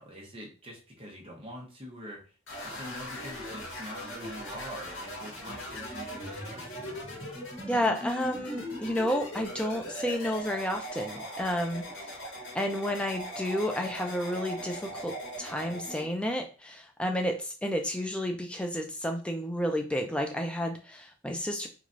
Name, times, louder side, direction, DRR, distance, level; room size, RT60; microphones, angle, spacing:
voice 1, 0.0-2.3 2.6-7.0, equal, 30° right, -2 dB, 0.8 m, -45 dB
sound 1, 2.5-16.1, equal, 80° left, 1.6 m, -39 dB
voice 2, 7.7-12.2 12.5-21.7, equal, 5° left, 3 dB, 0.3 m, -31 dB
3.1 x 2.3 x 2.5 m, 0.35 s
head